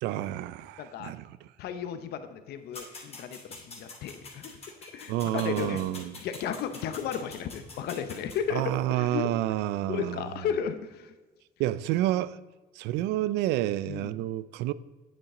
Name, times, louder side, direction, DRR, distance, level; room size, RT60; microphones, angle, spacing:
voice 1, 0.0-1.5 5.1-6.2 8.5-10.3 11.6-12.4 12.8-14.7, right 14 dB, 90° right, 0.4 m, -29 dB
voice 2, 0.8-1.1 1.6-4.5 4.8-5.8 6.2-9.3 9.9-11.1 13.9-14.1, left 8 dB, 75° left, 0.8 m, -34 dB
sound 1, 2.7-8.4, left 3 dB, 35° left, 2.6 m, -46 dB
sound 2, 5.6-6.1, right 3 dB, 20° right, 0.6 m, -45 dB
8.9 x 8.1 x 3.7 m
cardioid pair, 110°, 17 cm